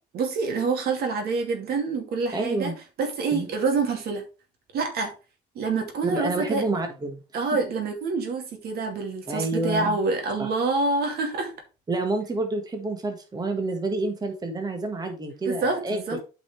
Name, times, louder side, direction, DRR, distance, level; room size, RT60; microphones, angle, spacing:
voice 1, 0.1-2.7 3.0-4.2 4.7-5.1 5.5-6.6 7.3-11.5 15.5-16.2, right 4 dB, 70° right, 2.5 m, -26 dB
voice 2, 2.3-2.7 3.3-3.5 6.0-7.2 9.3-10.0 10.4-10.5 11.9-16.0, right 2 dB, 25° right, 1.5 m, -28 dB
8.9 x 5.4 x 3.3 m
cardioid pair, 110°, 17 cm